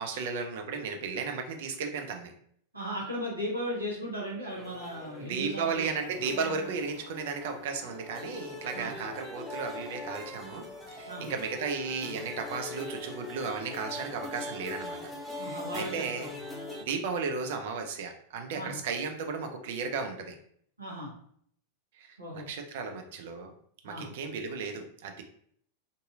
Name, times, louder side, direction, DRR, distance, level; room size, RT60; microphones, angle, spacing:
voice 1, 0.0-2.3 5.2-15.0 15.4-16.3 16.8-20.4 22.0-23.5 23.8-25.2, right 5 dB, 55° right, 5 dB, 0.4 m, -34 dB
voice 2, 2.7-5.9 8.7-8.9 11.1-11.3 15.4-16.3 18.5-18.8 20.8-21.1 22.2-22.5 23.8-24.1, equal, 80° right, -4 dB, 1.0 m, -36 dB
sound 1, 4.5-16.8, left 2 dB, ahead, 0.6 m, -42 dB
2.6 x 2.6 x 2.3 m, 0.63 s
figure-of-eight pair, 90°, 0 cm